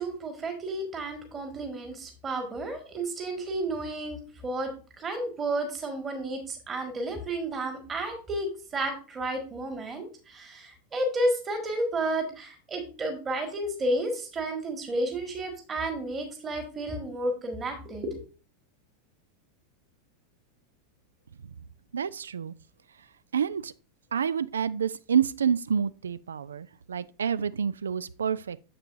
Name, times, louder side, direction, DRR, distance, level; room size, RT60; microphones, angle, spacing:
voice 1, 0.0-18.2, right 1 dB, 20° right, 1.7 m, -32 dB
voice 2, 21.9-22.5 23.3-23.7 24.1-28.6, right 7 dB, 70° right, 0.3 m, -28 dB
7.2 x 6.6 x 2.5 m
figure-of-eight pair, 90°, 0 cm